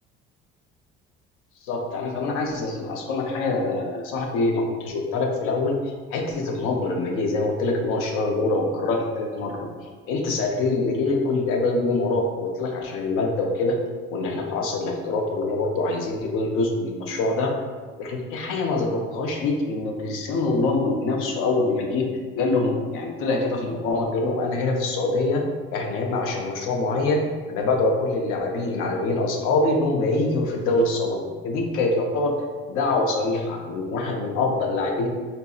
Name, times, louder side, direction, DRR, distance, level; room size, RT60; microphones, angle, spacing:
voice 1, 1.7-5.7 6.1-9.7 10.1-13.8 14.1-17.5 18.0-22.1 22.3-25.4 25.7-27.2 27.5-32.3 32.7-35.1, left 2 dB, 80° left, 2 dB, 0.6 m, -24 dB
3.9 x 2.6 x 2.3 m, 1.5 s
cardioid pair, 125°, 21 cm